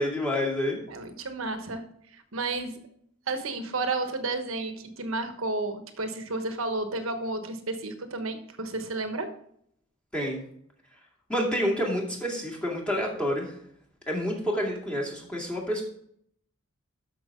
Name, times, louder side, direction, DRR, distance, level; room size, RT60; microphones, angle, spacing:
voice 1, 0.0-0.8 10.1-10.4 11.3-13.5 14.1-15.8, equal, 5° left, -3 dB, 2.2 m, -28 dB
voice 2, 0.9-1.8 2.1-2.8 3.3-9.3, right 3 dB, 70° right, 8 dB, 1.2 m, -32 dB
13.0 x 5.9 x 3.7 m, 0.67 s
head